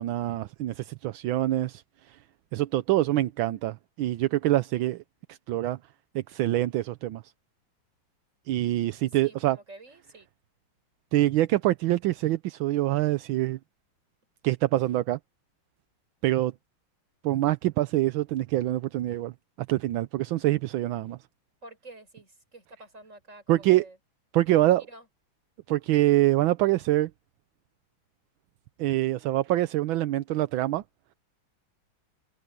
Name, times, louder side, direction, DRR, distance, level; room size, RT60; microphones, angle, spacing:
voice 1, 0.0-2.2 2.5-5.0 5.3-5.8 6.1-7.2 8.5-9.6 11.1-13.6 14.4-15.2 16.2-16.5 17.2-19.3 19.7-21.2 23.5-23.8 24.3-24.8 25.7-27.1 28.8-30.8, right 15 dB, 80° right, 1.4 m, -25 dB
voice 2, 9.2-10.3 21.6-24.0 24.5-25.1, right 2 dB, 35° right, 5.9 m, -49 dB
omnidirectional pair, 2.3 m